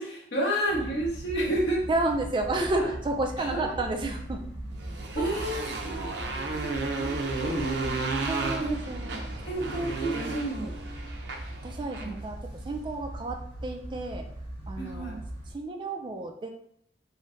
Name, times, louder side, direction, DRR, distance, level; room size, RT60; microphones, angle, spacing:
voice 1, 0.0-1.8 3.5-3.7 5.1-8.0 8.6-8.8 9.5-10.7 12.0-12.1 14.8-15.2, right 1 dB, 80° left, -4 dB, 1.2 m, -31 dB
sound 1, 0.7-15.5, right 1 dB, 20° left, 1.0 m, -39 dB
voice 2, 1.9-4.5 5.2-5.8 8.3-9.3 11.6-14.3 14.7-15.2 15.5-16.5, right 2 dB, 25° right, 4 dB, 0.3 m, -31 dB
Motorcycle, 4.8-12.2, right 3 dB, 75° right, 0.6 m, -33 dB
3.8 x 2.1 x 3.9 m, 0.71 s
head